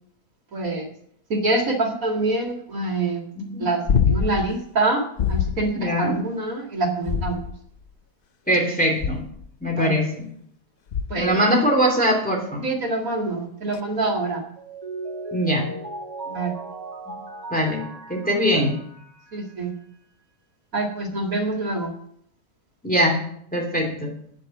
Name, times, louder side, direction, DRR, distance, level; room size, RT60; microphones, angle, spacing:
voice 1, 0.5-0.9 1.3-3.2 3.6-5.0 5.3-7.4 9.7-9.9 11.1-11.5 12.6-14.5 16.3-16.6 19.3-19.7 20.7-22.0, right 2 dB, 60° right, 1 dB, 2.4 m, -25 dB
voice 2, 3.4-3.7 5.7-6.2 8.5-9.3 9.6-10.3 11.2-12.6 15.3-15.7 17.1-17.2 17.5-18.8 22.8-23.2 23.5-24.2, equal, 5° left, -1 dB, 2.7 m, -22 dB
sound 1, 3.9-4.5 5.2-5.7 7.0-7.8 9.0-9.5 10.9-11.4 13.7-13.8, left 7 dB, 60° left, 0.5 m, -24 dB
Mallet percussion, 14.6-19.5, right 3 dB, 25° right, 2.0 m, -37 dB
9.0 x 8.9 x 7.1 m, 0.66 s
omnidirectional pair, 1.7 m